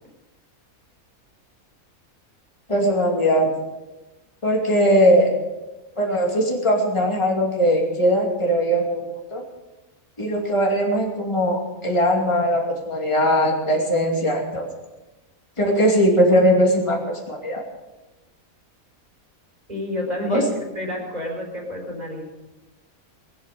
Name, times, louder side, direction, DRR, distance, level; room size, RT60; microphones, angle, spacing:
voice 1, 2.7-3.5 4.4-5.3 6.0-9.0 9.3-9.4 10.2-14.6 15.6-17.6 20.3-20.4, equal, 20° left, 0 dB, 2.6 m, -20 dB
voice 2, 19.7-22.2, left 1 dB, 25° right, -2 dB, 4.8 m, -29 dB
20.5 x 8.5 x 6.8 m, 1.1 s
omnidirectional pair, 1.5 m